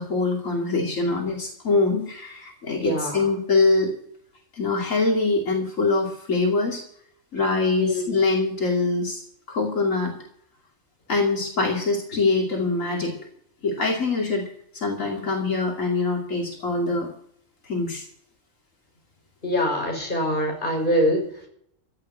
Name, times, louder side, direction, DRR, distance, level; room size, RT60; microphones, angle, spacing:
voice 1, 0.0-3.9 4.5-6.8 7.3-9.2 9.5-10.1 11.1-13.1 13.6-14.4 14.7-17.1 17.6-18.1, left 3 dB, 85° left, -1 dB, 3.1 m, -24 dB
voice 2, 2.8-3.3 7.7-8.1 19.4-21.2, equal, 40° left, 0 dB, 6.2 m, -24 dB
16.0 x 6.9 x 9.2 m, 0.66 s
omnidirectional pair, 1.3 m